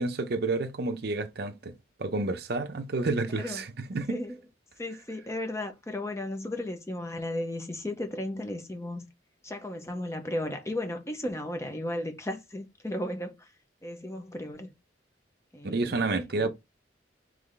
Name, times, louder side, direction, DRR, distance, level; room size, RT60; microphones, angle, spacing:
voice 1, 0.0-1.7 2.0-4.2 15.6-16.5, right 3 dB, 55° right, 0.5 m, -30 dB
voice 2, 3.3-3.6 4.1-4.4 4.8-9.1 9.4-13.5 13.8-14.7 15.5-16.0 16.4-16.5, left 1 dB, 15° left, 0.7 m, -35 dB
3.4 x 3.2 x 3.8 m
head